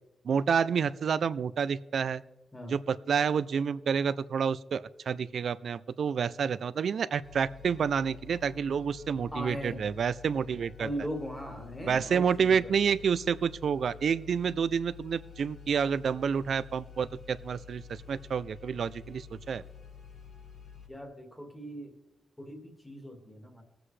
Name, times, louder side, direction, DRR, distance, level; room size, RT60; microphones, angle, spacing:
voice 1, 0.2-2.2 2.7-10.9 11.9-19.6, right 7 dB, 65° right, 18 dB, 0.4 m, -29 dB
sound 1, 7.2-20.9, left 7 dB, 55° left, 2.2 m, -49 dB
voice 2, 9.3-9.9 10.8-12.7 20.9-21.9 22.4-23.6, equal, 10° left, 3 dB, 1.8 m, -39 dB
20.5 x 7.7 x 3.2 m, 1.0 s
wide cardioid pair, 165°, 0 cm